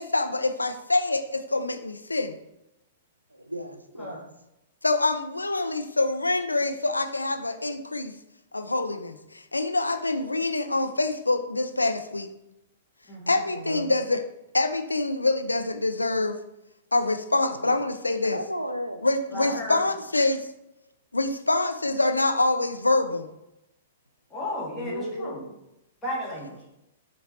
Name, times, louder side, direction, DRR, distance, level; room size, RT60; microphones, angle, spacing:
voice 1, 0.0-2.4 4.8-8.1 8.5-12.3 13.3-14.2 14.5-16.4 16.9-18.4 19.0-20.5 21.1-23.3, left 2 dB, 80° left, 8 dB, 0.3 m, -25 dB
voice 2, 3.3-4.2 13.5-13.9 17.5-17.7 18.2-19.0 19.3-19.7 24.7-25.5, equal, 85° right, 7 dB, 0.4 m, -35 dB
voice 3, 13.1-13.4 19.3-19.9 24.3-25.4 26.0-26.6, left 1 dB, 15° left, -5 dB, 1.6 m, -34 dB
5.8 x 2.8 x 2.8 m, 0.87 s
figure-of-eight pair, 105°, 0 cm